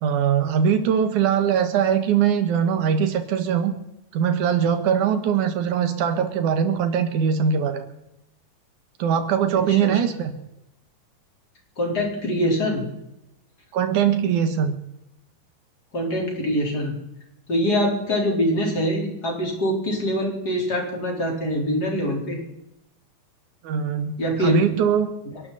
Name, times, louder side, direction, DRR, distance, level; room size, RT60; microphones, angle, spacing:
voice 1, 0.0-3.7 4.1-7.9 9.0-10.4 13.7-14.7 23.6-25.1, right 8 dB, 70° right, 8 dB, 2.9 m, -21 dB
voice 2, 9.7-10.0 11.8-12.9 15.9-17.0 17.5-22.4 24.2-24.6, equal, 30° left, 0 dB, 4.5 m, -24 dB
29.5 x 11.5 x 4.2 m, 0.86 s
omnidirectional pair, 3.8 m